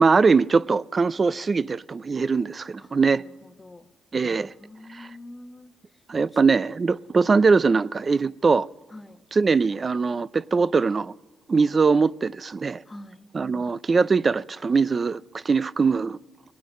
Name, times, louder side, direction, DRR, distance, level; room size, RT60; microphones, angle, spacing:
voice 1, 0.0-3.2 4.1-4.5 4.9-5.1 6.1-8.7 9.4-11.1 11.5-12.8 13.3-16.2, right 4 dB, 35° right, 0.4 m, -21 dB
voice 2, 2.8-3.9 4.4-6.0 6.3-6.4 8.9-9.3 12.8-13.3, left 1 dB, 15° left, 1.1 m, -46 dB
23.0 x 9.4 x 6.4 m
cardioid pair, 90°, 0 cm